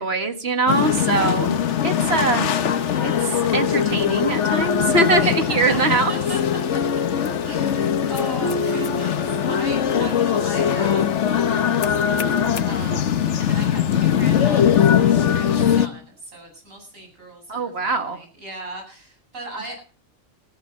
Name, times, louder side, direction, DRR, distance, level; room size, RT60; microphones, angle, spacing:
voice 1, 0.0-2.5 3.0-6.1 17.5-18.2, right 3 dB, 50° right, 7 dB, 1.9 m, -22 dB
sound 1, 0.7-15.9, left 8 dB, 65° left, 1.2 m, -21 dB
voice 2, 5.2-6.4 7.4-19.8, right 2 dB, 75° right, 3 dB, 8.6 m, -38 dB
20.0 x 14.0 x 4.5 m, 0.41 s
omnidirectional pair, 1.4 m